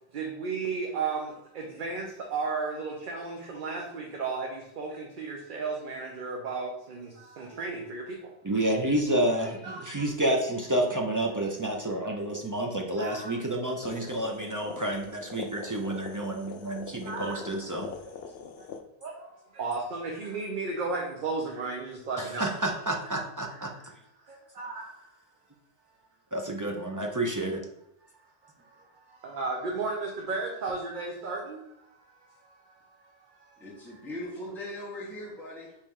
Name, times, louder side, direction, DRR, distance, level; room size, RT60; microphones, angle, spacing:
voice 1, 0.1-8.2 9.6-9.8 13.0-13.4 17.1-17.5 19.0-19.2 19.5-22.5 23.6-23.7 24.6-24.9 29.2-31.6, right 4 dB, 55° right, 0 dB, 0.8 m, -34 dB
voice 2, 8.4-17.9 22.2-23.9 26.3-27.6, right 1 dB, 30° right, 1 dB, 0.3 m, -30 dB
sound 1, 13.8-18.8, left 6 dB, 75° left, 0.8 m, -42 dB
voice 3, 33.6-35.8, left 1 dB, ahead, -5 dB, 0.9 m, -39 dB
4.4 x 3.1 x 3.6 m, 0.80 s
omnidirectional pair, 1.1 m